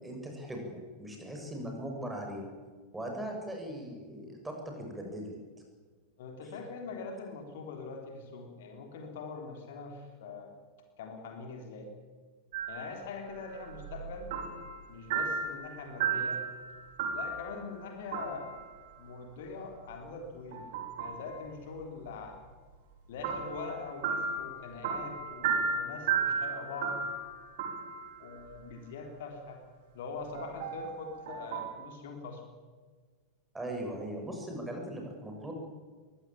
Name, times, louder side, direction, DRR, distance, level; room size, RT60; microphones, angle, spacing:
voice 1, 0.0-2.4 2.9-5.3 33.5-35.5, right 1 dB, 10° right, 2 dB, 6.4 m, -39 dB
voice 2, 6.2-10.5 11.0-11.9 12.7-14.3 14.9-16.4 17.1-18.6 19.0-20.6 21.0-22.4 23.1-27.0 28.2-29.6 29.9-32.4 33.9-34.0, left 4 dB, 55° left, 3 dB, 3.8 m, -43 dB
sound 1, 12.5-13.0 13.4-14.8 15.1-17.8 18.1-18.6 20.5-21.3 23.2-28.5 30.3-31.7, right 5 dB, 50° right, 4.3 m, -35 dB
23.0 x 16.5 x 8.9 m, 1.5 s
figure-of-eight pair, 90°, 0 cm